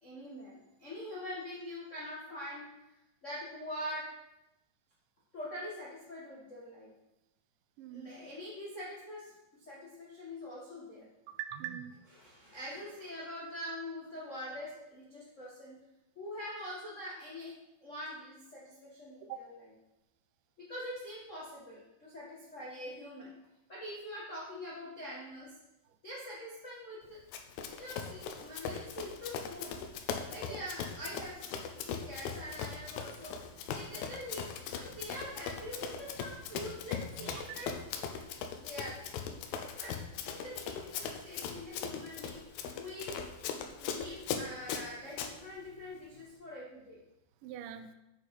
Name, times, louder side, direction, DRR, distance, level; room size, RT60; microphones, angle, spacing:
voice 1, 0.0-2.7 3.2-4.1 5.3-6.9 7.9-11.1 12.2-15.8 16.1-17.5 17.8-19.6 20.6-23.3 23.7-25.5 26.0-27.2 27.8-29.8 30.2-38.1 38.6-39.3 39.8-39.9 40.2-43.2 43.8-47.0, left 1 dB, 55° left, -7 dB, 0.8 m, -44 dB
voice 2, 7.8-8.2 11.3-12.0 19.2-19.4 30.5-30.6 37.2-37.4 47.4-47.9, right 10 dB, 80° right, 8 dB, 2.0 m, -43 dB
Run, 27.3-45.3, left 7 dB, 85° left, 2.5 m, -40 dB
8.6 x 6.1 x 4.4 m, 0.92 s
omnidirectional pair, 4.3 m